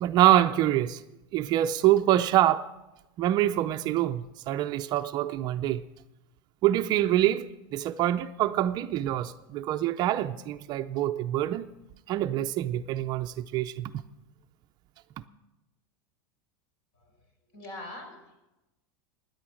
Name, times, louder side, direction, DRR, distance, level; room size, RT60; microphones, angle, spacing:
voice 1, 0.0-1.0 1.3-2.7 3.2-5.8 6.6-7.5 7.7-11.7 12.1-13.9, right 13 dB, 35° right, 0.5 m, -25 dB
voice 2, 17.5-18.4, left 1 dB, 55° left, 5.3 m, -42 dB
17.0 x 10.0 x 6.3 m
supercardioid pair, 155°, 13 cm